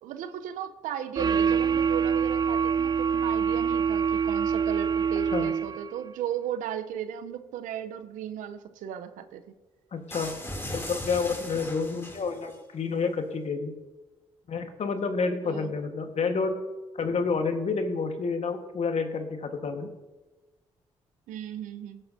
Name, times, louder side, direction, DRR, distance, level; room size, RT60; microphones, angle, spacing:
voice 1, 0.0-9.4 15.4-15.7 21.3-22.0, right 9 dB, 75° right, 11 dB, 0.7 m, -36 dB
sound 1, 1.2-6.0, right 7 dB, 30° right, 0.3 m, -25 dB
voice 2, 9.9-10.3 10.7-13.7 14.5-16.6 17.0-19.9, left 4 dB, 55° left, 6 dB, 1.4 m, -29 dB
sound 2, 10.1-12.6, left 1 dB, 20° left, 2.8 m, -38 dB
16.5 x 7.7 x 2.7 m, 1.2 s
hypercardioid pair, 40°, 13 cm